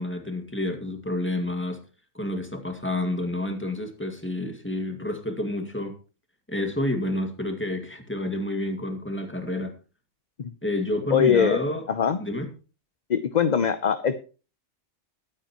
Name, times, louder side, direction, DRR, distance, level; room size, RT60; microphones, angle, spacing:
voice 1, 0.0-1.8 2.1-6.0 6.5-9.7 10.6-11.9 12.2-12.5, left 1 dB, 10° left, 2.0 m, -29 dB
voice 2, 11.1-12.2 13.1-14.2, left 7 dB, 40° left, 0.7 m, -22 dB
22.0 x 9.2 x 3.0 m
omnidirectional pair, 1.3 m